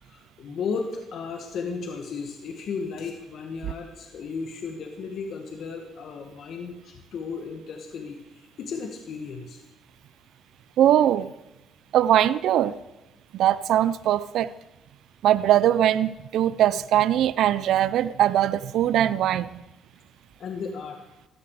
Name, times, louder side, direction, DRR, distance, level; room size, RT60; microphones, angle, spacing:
voice 1, 0.0-9.6 20.4-21.1, left 5 dB, 65° left, 3 dB, 1.8 m, -34 dB
voice 2, 10.8-11.3 11.9-12.8 13.3-14.5 15.2-19.5, right 11 dB, 80° right, 17 dB, 0.5 m, -21 dB
17.0 x 14.0 x 4.9 m, 0.95 s
cardioid pair, 90°, 0 cm